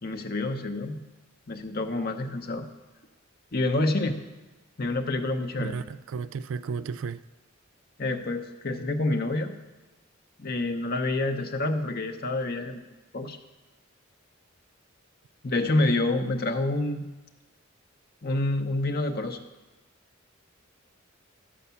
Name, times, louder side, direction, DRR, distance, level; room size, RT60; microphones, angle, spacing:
voice 1, 0.0-1.0 1.5-2.7 3.5-4.2 4.8-5.8 8.0-9.6 10.4-12.8 13.1-13.4 15.4-17.0 18.2-19.4, left 2 dB, 50° left, 6 dB, 0.8 m, -27 dB
voice 2, 5.6-7.2, right 5 dB, 70° right, 15 dB, 0.3 m, -33 dB
12.0 x 5.0 x 6.9 m, 1.1 s
head